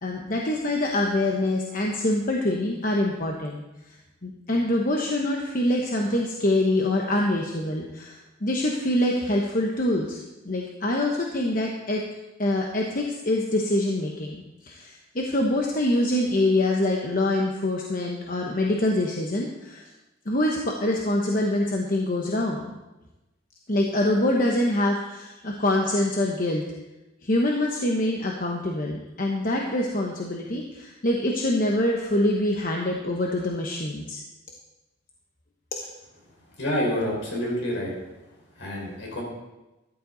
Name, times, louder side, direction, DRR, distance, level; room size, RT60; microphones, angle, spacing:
voice 1, 0.0-4.0 4.2-12.0 12.4-19.9 20.2-22.7 23.7-26.6 27.2-34.2 35.7-35.8, left 1 dB, 45° left, 0 dB, 1.1 m, -25 dB
voice 2, 36.6-38.0 38.6-39.2, equal, 70° left, -2 dB, 4.7 m, -28 dB
14.0 x 11.0 x 4.0 m, 1.0 s
head